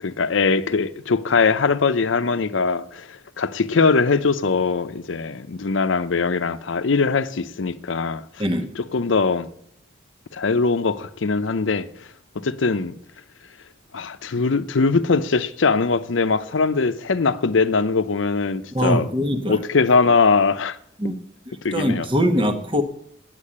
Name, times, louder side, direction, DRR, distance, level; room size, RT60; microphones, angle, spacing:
voice 1, 0.0-8.2 8.9-9.5 10.3-11.9 12.4-12.9 13.9-19.1 19.5-20.8 21.6-22.1, left 4 dB, 80° left, 0.6 m, -21 dB
voice 2, 18.7-19.6 21.0-21.1 21.7-22.8, equal, 25° right, 1.0 m, -22 dB
9.0 x 8.4 x 8.6 m
head